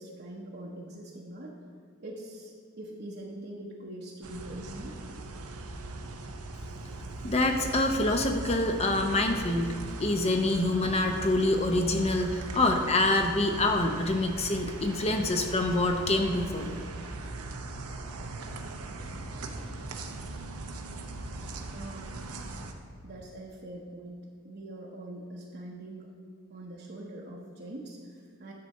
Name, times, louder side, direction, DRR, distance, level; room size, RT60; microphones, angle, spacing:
voice 1, 0.0-1.6 2.0-5.0 21.7-22.2 23.0-26.1 26.5-28.5, right 1 dB, 45° right, -3 dB, 0.8 m, -43 dB
sound 1, 4.2-22.7, right 2 dB, 85° right, 0.8 m, -39 dB
voice 2, 7.2-9.7 10.0-16.7, left 2 dB, 30° left, 4 dB, 0.6 m, -26 dB
10.5 x 4.1 x 6.5 m, 2.2 s
head